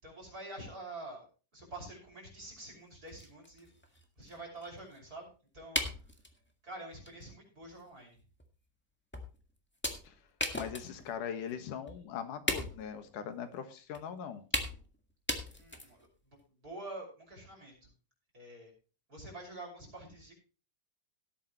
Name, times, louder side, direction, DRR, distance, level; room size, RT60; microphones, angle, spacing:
voice 1, 0.0-1.3 1.5-5.8 6.6-8.2 15.5-17.9 18.3-18.7 19.1-20.3, right 2 dB, 25° right, -1 dB, 6.2 m, -47 dB
sound 1, 2.7-2.8 3.1-5.0 5.7-6.4 7.0-7.2 7.6-7.7 8.4-8.5 9.1-9.4 9.8-11.2 11.5-11.6 11.9-12.0 12.5-13.0 13.9-14.0 14.5-14.9 15.3-16.1, left 1 dB, 15° left, 0.4 m, -37 dB
voice 2, 10.5-14.4, left 8 dB, 80° left, 9 dB, 3.0 m, -40 dB
18.0 x 8.6 x 3.1 m, 0.35 s
omnidirectional pair, 3.7 m